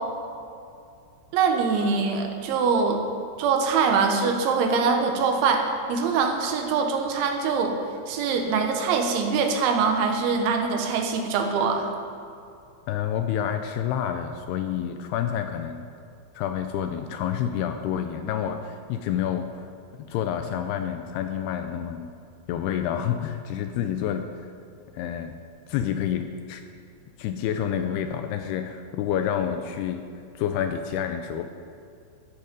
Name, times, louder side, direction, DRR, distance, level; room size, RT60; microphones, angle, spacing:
voice 1, 1.3-3.0 3.4-7.8 8.1-11.9, right 5 dB, 85° right, 4 dB, 3.7 m, -23 dB
voice 2, 12.9-15.9 16.4-19.7 20.0-22.1 22.5-24.2 24.9-25.4 25.7-26.6 27.2-30.0 30.4-31.5, left 9 dB, 85° left, 7 dB, 2.3 m, -28 dB
14.5 x 13.5 x 5.3 m, 2.4 s
omnidirectional pair, 5.3 m